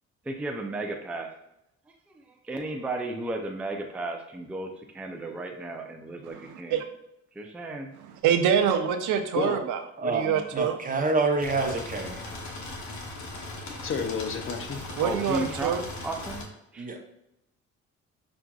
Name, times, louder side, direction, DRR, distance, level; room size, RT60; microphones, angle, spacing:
voice 1, 0.3-1.3 2.3-6.8 7.4-7.9 13.7-13.8 15.0-16.4 16.7-16.9, right 2 dB, 5° right, 2 dB, 0.4 m, -34 dB
voice 2, 6.3-6.8 8.2-10.7 15.0-15.8, right 8 dB, 80° right, 7 dB, 0.5 m, -25 dB
voice 3, 10.0-12.3 16.8-17.0, right 3 dB, 25° right, 2 dB, 0.7 m, -27 dB
sound 1, 11.4-16.4, left 2 dB, 70° left, 0.8 m, -38 dB
voice 4, 13.8-14.9, left 5 dB, 45° left, 6 dB, 0.5 m, -30 dB
5.9 x 2.5 x 2.3 m, 0.84 s
cardioid pair, 90°, 30 cm